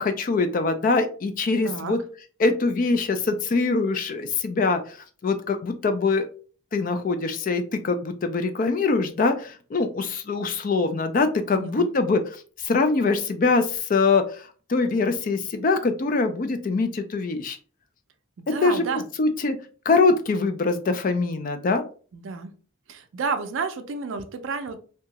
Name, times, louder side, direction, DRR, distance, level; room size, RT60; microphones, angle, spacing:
voice 1, 0.0-2.0 2.4-5.0 5.2-6.3 6.7-12.2 12.6-17.6 18.6-18.8 19.2-19.6 19.9-21.8, left 3 dB, 40° left, 8 dB, 0.3 m, -23 dB
voice 2, 1.6-1.9 11.5-11.9 18.4-19.0 22.1-22.5 22.9-24.8, right 4 dB, 65° right, 8 dB, 0.4 m, -30 dB
2.8 x 2.2 x 2.8 m, 0.40 s
head